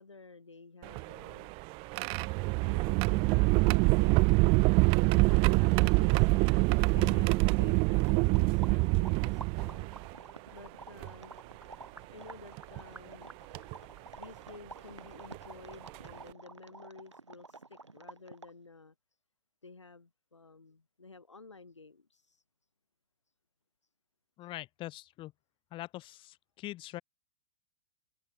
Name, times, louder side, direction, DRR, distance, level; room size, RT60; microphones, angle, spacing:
voice 1, 0.0-1.5 2.6-4.4 5.0-9.8 10.5-11.3 12.1-13.3 14.1-18.9 19.6-22.4, left 3 dB, 85° left, 7.5 m, -52 dB
sound 1, 0.8-10.1 11.0-11.1 12.6-12.8 13.5-13.7 15.3-15.4 15.9-16.1, right 28 dB, 40° right, 0.7 m, -25 dB
voice 2, 6.9-7.3 24.4-25.3 25.7-27.0, left 16 dB, 35° left, 3.5 m, -43 dB
sound 2, 7.0-18.7, right 3 dB, 85° right, 4.1 m, -50 dB
figure-of-eight pair, 100°, 15 cm